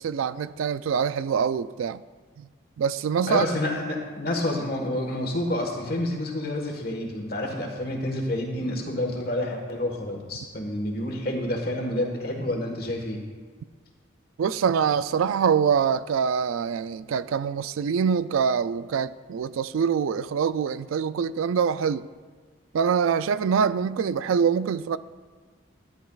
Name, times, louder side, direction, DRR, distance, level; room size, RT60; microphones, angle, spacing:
voice 1, 0.0-2.0 2.4-2.5 2.8-3.5 14.4-22.1 22.7-25.0, right 6 dB, 85° right, 0.3 m, -24 dB
voice 2, 3.3-13.2, left 1 dB, 50° left, 1.4 m, -29 dB
13.5 x 10.0 x 2.4 m
head